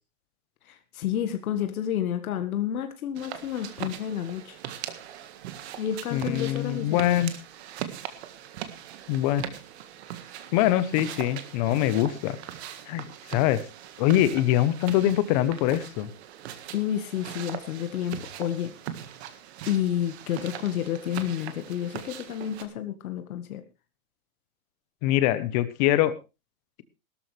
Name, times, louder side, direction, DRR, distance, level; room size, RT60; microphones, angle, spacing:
voice 1, 0.7-4.6 5.8-7.2 16.7-18.7 19.7-23.6, left 10 dB, 70° left, 8 dB, 1.8 m, -30 dB
sound 1, 3.1-22.6, right 10 dB, 45° right, 1.7 m, -40 dB
voice 2, 6.1-7.3 9.1-9.5 10.5-12.4 12.9-13.6 14.0-16.1 25.0-26.1, left 13 dB, 30° left, 14 dB, 1.0 m, -23 dB
17.0 x 13.0 x 3.3 m, 0.28 s
supercardioid pair, 175°, 44 cm